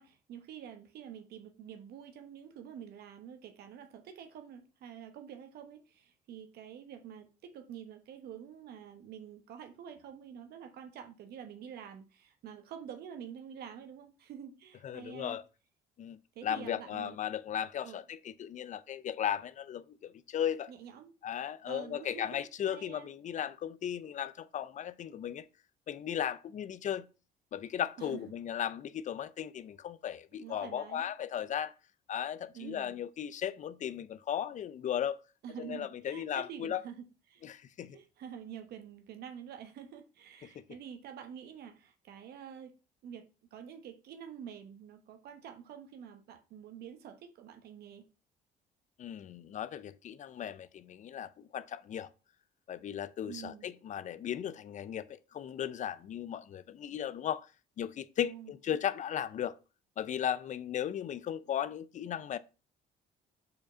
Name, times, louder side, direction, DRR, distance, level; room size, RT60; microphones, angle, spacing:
voice 1, 0.0-15.4 16.3-17.2 17.8-18.0 20.7-21.1 21.6-23.1 28.0-28.2 30.3-31.1 32.5-33.0 35.4-37.0 37.3-37.5 37.9-42.7 43.0-48.0 53.2-53.7 58.2-58.9, right 8 dB, 70° right, 1.0 m, -47 dB
voice 2, 14.8-15.4 16.0-20.7 21.2-25.4 25.9-27.1 27.5-31.7 32.1-35.2 35.6-36.8 37.4-38.0 40.4-40.6 49.0-52.1 52.7-57.5 57.8-59.5 60.0-62.4, left 9 dB, 45° left, 0.5 m, -36 dB
5.2 x 4.7 x 5.6 m
cardioid pair, 110°, 17 cm